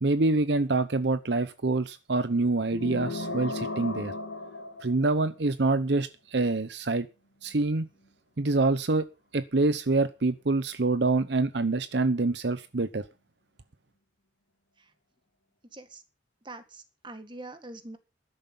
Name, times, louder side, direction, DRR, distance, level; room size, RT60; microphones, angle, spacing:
voice 1, 0.0-4.1 4.8-7.1 7.4-7.9 8.4-9.1 9.3-13.1, right 3 dB, 65° right, 0.8 m, -26 dB
sound 1, 2.7-5.4, left 3 dB, 75° left, 2.0 m, -35 dB
voice 2, 15.7-16.0 16.4-18.0, right 2 dB, 25° right, 1.8 m, -43 dB
13.5 x 11.0 x 5.4 m
head